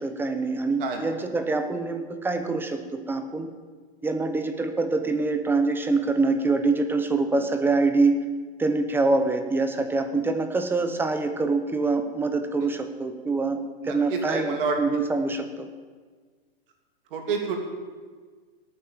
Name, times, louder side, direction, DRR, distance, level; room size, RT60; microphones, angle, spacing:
voice 1, 0.0-3.5 4.0-8.2 8.6-15.7, right 3 dB, 5° right, 7 dB, 0.9 m, -25 dB
voice 2, 13.8-14.8 17.1-17.6, right 5 dB, 60° right, 3 dB, 3.0 m, -28 dB
17.5 x 8.9 x 7.4 m, 1.5 s
hypercardioid pair, 150°, 31 cm